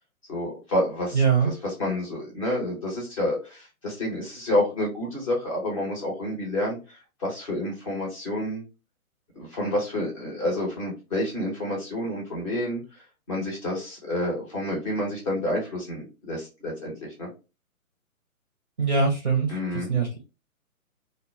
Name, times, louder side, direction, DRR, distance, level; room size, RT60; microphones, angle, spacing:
voice 1, 0.3-8.6 9.4-12.8 13.3-16.9 17.2-17.3 19.5-19.9, left 1 dB, 25° left, -3 dB, 0.7 m, -29 dB
voice 2, 1.1-1.5 18.8-20.3, right 5 dB, 35° right, 0 dB, 0.5 m, -23 dB
2.1 x 2.1 x 2.9 m, 0.29 s
figure-of-eight pair, 130°, 43 cm